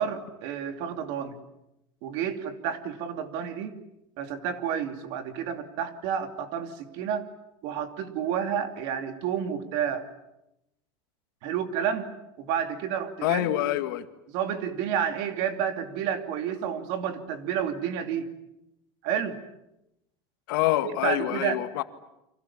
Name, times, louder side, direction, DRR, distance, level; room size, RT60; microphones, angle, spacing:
voice 1, 0.0-1.4 2.0-3.7 4.2-7.3 7.6-10.1 11.4-12.1 12.4-13.5 14.3-18.3 19.0-19.4 20.8-21.6, right 8 dB, 55° right, 7 dB, 2.9 m, -30 dB
voice 2, 13.2-14.1 20.5-21.8, left 14 dB, 85° left, 9 dB, 2.0 m, -26 dB
30.0 x 25.5 x 7.4 m, 0.88 s
cardioid pair, 165°, 11 cm